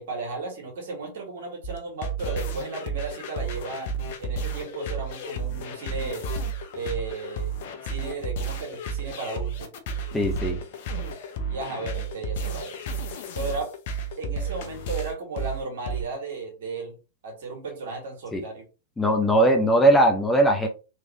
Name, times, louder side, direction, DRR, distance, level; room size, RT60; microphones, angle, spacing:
voice 1, 0.0-3.9 4.2-6.3 6.7-7.6 7.8-9.7 11.5-12.8 13.3-13.8 14.2-17.0 17.2-18.6, right 3 dB, 60° right, 1.9 m, -35 dB
sound 1, 1.6-16.0, right 3 dB, 55° left, 0.7 m, -32 dB
voice 2, 10.1-10.6 18.3-18.4 19.0-20.7, right 1 dB, 10° left, 0.8 m, -19 dB
3.5 x 3.2 x 2.9 m
figure-of-eight pair, 100°, 0 cm